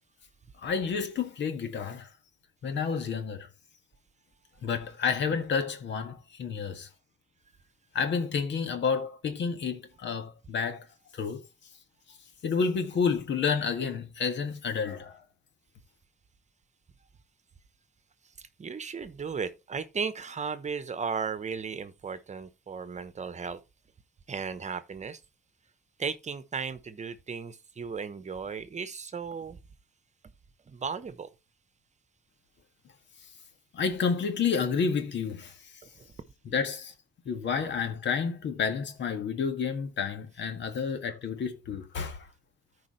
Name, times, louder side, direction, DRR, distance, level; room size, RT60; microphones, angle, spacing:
voice 1, 0.6-2.1 2.6-3.5 4.6-6.9 7.9-10.9 11.1-11.4 12.4-15.2 33.7-35.6 36.5-36.9 37.3-42.3, left 6 dB, 65° left, 1.8 m, -30 dB
voice 2, 18.4-23.6 24.3-25.2 26.0-29.6 30.7-31.3 35.8-36.1, right 5 dB, 35° right, 1.0 m, -35 dB
14.0 x 4.8 x 3.2 m
cardioid pair, 90°, 20 cm